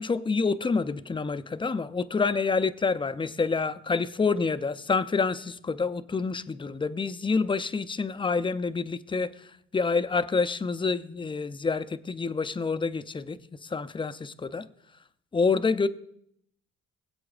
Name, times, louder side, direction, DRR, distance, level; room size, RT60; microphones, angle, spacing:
voice 1, 0.0-9.3 9.7-14.7 15.3-15.9, left 4 dB, 15° left, 0.5 m, -27 dB
23.0 x 7.9 x 2.4 m
cardioid pair, 90°, 30 cm